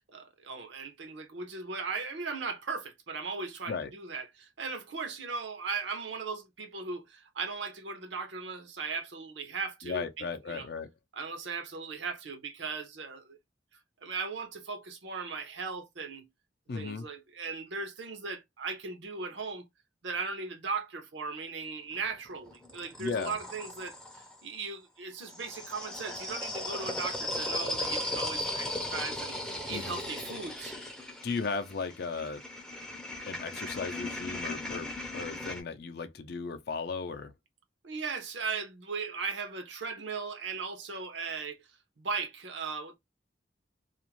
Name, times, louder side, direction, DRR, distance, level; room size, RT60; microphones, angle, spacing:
voice 1, 0.0-10.7 11.1-13.4 14.0-16.3 16.7-19.7 20.0-30.8 37.8-41.6 42.0-43.0, right 4 dB, 65° right, 0.7 m, -38 dB
voice 2, 9.8-10.9 16.7-17.0 23.0-23.4 29.7-30.0 31.2-32.4 33.2-37.3, left 4 dB, 55° left, 0.5 m, -36 dB
sound 1, 21.9-24.4 25.2-35.6, left 1 dB, 5° left, 0.5 m, -37 dB
2.4 x 2.0 x 2.9 m
head